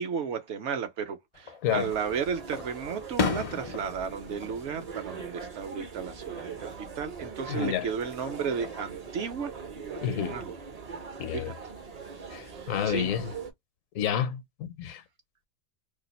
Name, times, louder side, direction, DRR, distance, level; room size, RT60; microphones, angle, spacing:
voice 1, 0.0-6.7 6.9-10.5 11.3-11.5 12.1-13.1, right 6 dB, 65° right, 0.8 m, -34 dB
Fireworks, 1.3-2.0 2.5-5.6 6.0-6.5 8.1-8.9, left 4 dB, 50° left, 0.4 m, -35 dB
sound 1, 1.7-13.5, right 5 dB, 45° right, 0.5 m, -41 dB
voice 2, 7.5-7.9 10.0-10.4 11.2-11.5 12.3-13.3 13.9-15.0, left 9 dB, 75° left, 1.0 m, -30 dB
2.5 x 2.4 x 4.0 m
omnidirectional pair, 1.4 m